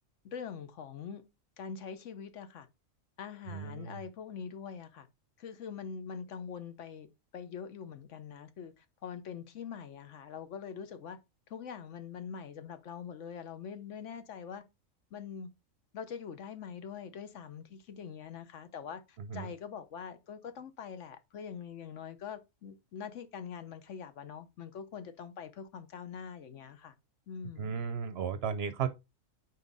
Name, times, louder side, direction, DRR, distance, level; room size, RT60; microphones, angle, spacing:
voice 1, 0.2-1.2 1.6-2.7 3.2-5.1 5.4-7.1 7.3-11.2 11.5-14.6 15.1-15.5 15.9-26.9 27.3-27.9, left 7 dB, 70° left, 1.1 m, -44 dB
voice 2, 3.5-4.0 19.2-19.5 27.6-28.9, right 6 dB, 60° right, 0.8 m, -35 dB
5.4 x 4.7 x 3.9 m
omnidirectional pair, 1.4 m